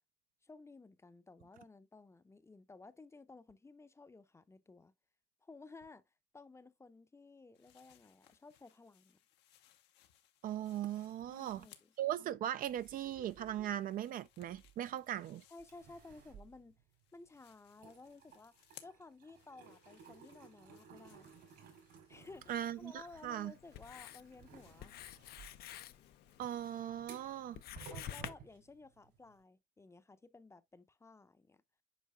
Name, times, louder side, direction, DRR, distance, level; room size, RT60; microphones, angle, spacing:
voice 1, 0.4-4.9 5.4-9.2 11.3-11.9 15.5-16.8 17.1-18.5 18.8-21.3 22.1-24.9 27.9-31.6, left 3 dB, 15° left, 0.6 m, -56 dB
sound 1, 7.5-12.1 12.4-16.6 16.9-26.8, left 11 dB, 85° left, 1.0 m, -66 dB
voice 2, 10.4-11.7 12.0-15.4 22.5-23.5 26.4-27.6, right 11 dB, 55° right, 0.4 m, -39 dB
sound 2, 12.7-15.2 15.6-17.4 17.7-29.4, right 6 dB, 75° right, 3.5 m, -57 dB
Writing, 22.1-28.3, left 12 dB, 65° left, 0.5 m, -51 dB
8.3 x 5.4 x 2.2 m
cardioid pair, 110°, 17 cm